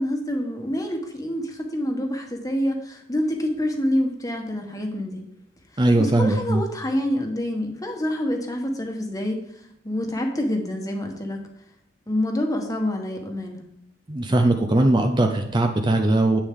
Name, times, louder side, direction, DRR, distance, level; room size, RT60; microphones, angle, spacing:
voice 1, 0.0-5.2 5.9-9.4 9.8-11.4 12.1-13.7, left 1 dB, 20° left, 2 dB, 1.3 m, -27 dB
voice 2, 5.8-6.6 14.1-16.4, right 2 dB, 25° right, 4 dB, 0.6 m, -20 dB
10.0 x 8.2 x 3.7 m, 0.74 s
head